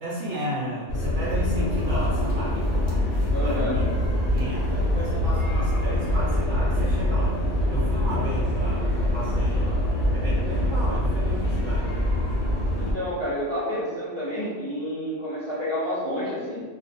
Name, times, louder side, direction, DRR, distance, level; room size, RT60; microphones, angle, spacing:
voice 1, 0.0-3.0 3.4-3.9 4.3-7.4 7.7-9.8 10.1-11.9, equal, 75° right, -8 dB, 0.9 m, -33 dB
sound 1, 0.9-12.9, left 1 dB, 85° left, 1.0 m, -24 dB
voice 2, 3.3-3.8 12.8-16.6, equal, 45° left, -12 dB, 1.0 m, -29 dB
2.4 x 2.1 x 2.5 m, 1.5 s
omnidirectional pair, 1.2 m